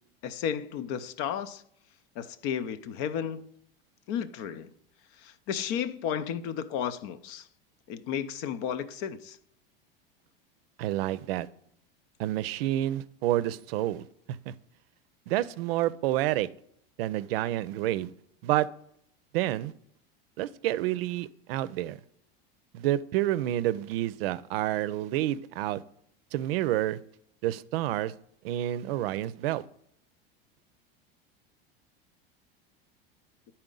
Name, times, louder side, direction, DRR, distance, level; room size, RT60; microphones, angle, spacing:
voice 1, 0.2-1.6 2.2-3.5 4.1-4.7 5.2-7.5 7.9-9.4, left 8 dB, 60° left, 0.6 m, -33 dB
voice 2, 10.8-11.5 12.2-14.1 14.5-14.6 15.3-16.5 17.0-18.1 18.4-18.7 19.3-19.7 20.4-22.0 22.7-25.8 26.3-27.0 27.4-28.1 28.4-29.6, right 14 dB, 75° right, 0.5 m, -29 dB
9.7 x 4.3 x 3.8 m
hypercardioid pair, 100°, 29 cm